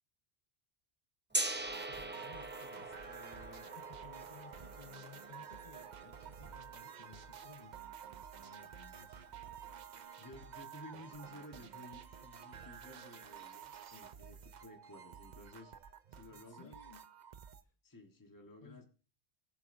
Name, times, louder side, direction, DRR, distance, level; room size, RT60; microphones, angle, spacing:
Gong, 1.3-7.2, right 2 dB, 15° right, 0.5 m, -42 dB
sound 1, 1.7-17.6, right 8 dB, 50° right, 0.7 m, -51 dB
voice 1, 1.9-7.8 8.4-9.3 16.3-17.0 18.6-18.8, left 5 dB, 35° left, 1.2 m, -58 dB
voice 2, 10.2-15.7 16.1-16.8 17.8-18.8, left 1 dB, 20° left, 1.4 m, -54 dB
18.0 x 8.7 x 2.7 m
omnidirectional pair, 1.1 m